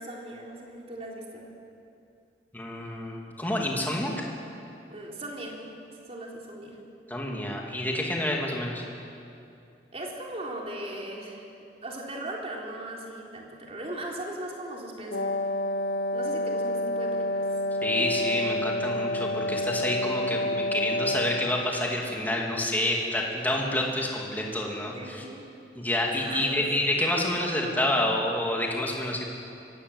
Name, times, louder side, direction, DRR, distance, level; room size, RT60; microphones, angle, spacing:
voice 1, 0.0-1.5 4.9-5.6 6.1-6.8 9.9-11.5 11.8-15.3 16.1-17.4 24.9-25.5 26.2-27.0, right 1 dB, 35° right, -1 dB, 3.7 m, -38 dB
voice 2, 2.5-4.1 7.1-8.8 17.8-25.2 25.8-29.2, left 1 dB, 10° left, -1 dB, 2.9 m, -28 dB
Wind instrument woodwind instrument, 15.1-21.9, left 1 dB, 85° left, 1.2 m, -29 dB
24.5 x 17.0 x 8.2 m, 2.6 s
head